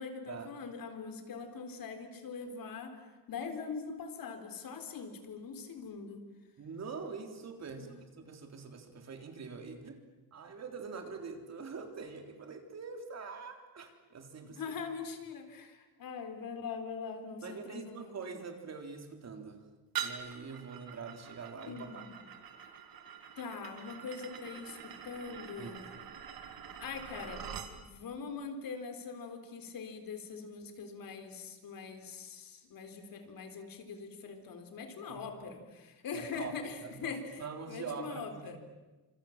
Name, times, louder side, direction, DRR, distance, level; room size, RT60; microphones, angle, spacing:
voice 1, 0.0-3.0 3.3-6.2 7.7-7.9 14.5-18.5 21.7-22.3 23.4-25.8 26.8-27.5 27.8-37.4 37.7-38.6, left 5 dB, 70° left, 7 dB, 4.0 m, -42 dB
voice 2, 6.6-7.9 8.2-10.0 10.3-14.6 17.4-19.6 20.0-22.0 25.6-26.0 35.1-35.2 36.1-36.5 36.8-38.6, right 5 dB, 45° right, 5 dB, 3.7 m, -44 dB
sound 1, 19.9-27.7, right 9 dB, 70° right, 2.6 m, -44 dB
29.5 x 27.0 x 7.5 m, 1.2 s
wide cardioid pair, 175°, 36 cm